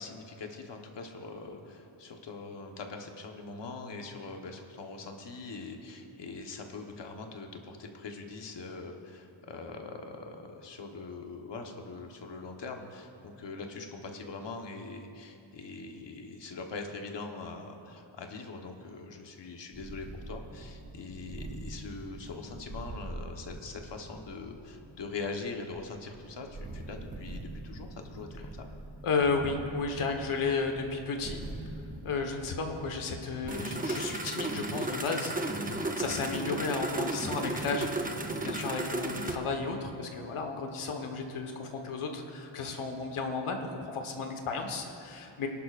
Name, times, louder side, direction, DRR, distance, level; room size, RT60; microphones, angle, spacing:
voice 1, 0.0-28.7, left 3 dB, 60° left, 3 dB, 1.3 m, -42 dB
sound 1, 19.7-39.4, right 2 dB, 20° right, 0.7 m, -38 dB
voice 2, 29.0-31.4 32.0-38.0 38.4-45.5, left 4 dB, 90° left, 3 dB, 1.5 m, -33 dB
24.0 x 11.0 x 2.5 m, 2.8 s
wide cardioid pair, 170°, 49 cm